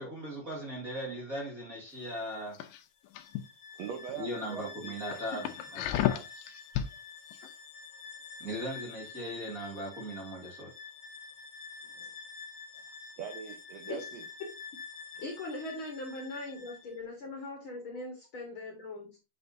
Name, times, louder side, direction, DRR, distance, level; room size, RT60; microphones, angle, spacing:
voice 1, 0.0-2.6 4.1-6.3 8.4-10.7, equal, 35° right, 1.6 m, -39 dB
sound 1, 2.6-3.4 3.9-4.1 4.6-4.7 5.1-6.9 7.3-7.5, left 11 dB, 85° left, 2.4 m, -32 dB
Bowed string instrument, 3.1-17.0, left 5 dB, 65° left, 2.1 m, -48 dB
voice 2, 3.7-5.2 7.4-7.5 12.7-14.2, right 7 dB, 75° right, 1.6 m, -43 dB
voice 3, 15.1-19.2, left 2 dB, 50° left, 1.8 m, -40 dB
8.1 x 6.1 x 2.7 m
omnidirectional pair, 4.1 m